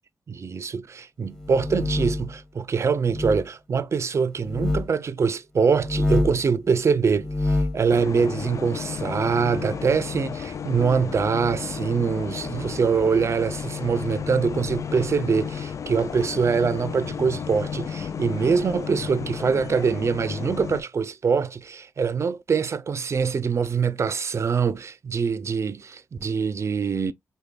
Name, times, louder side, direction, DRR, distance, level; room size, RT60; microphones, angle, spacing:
voice 1, 0.3-27.1, right 5 dB, 50° right, 0.5 m, -24 dB
sound 1, 1.3-2.3 3.0-3.4 4.4-4.9 5.7-6.4 7.1-7.8, left 2 dB, 10° left, 1.2 m, -25 dB
sound 2, 7.9-20.8, left 7 dB, 60° left, 0.3 m, -33 dB
5.0 x 2.2 x 2.2 m
cardioid pair, 75°, 6 cm